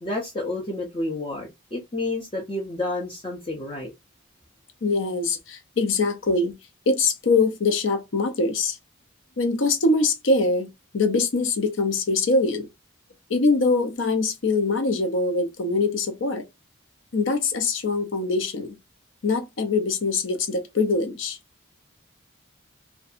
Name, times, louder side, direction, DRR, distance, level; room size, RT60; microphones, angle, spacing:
voice 1, 0.0-3.9, left 2 dB, 25° left, 0.5 m, -30 dB
voice 2, 4.8-6.6 6.9-8.8 9.4-10.7 10.9-12.7 13.3-16.4 17.1-18.8 19.2-21.4, left 3 dB, 70° left, 0.6 m, -23 dB
2.6 x 2.2 x 2.4 m
head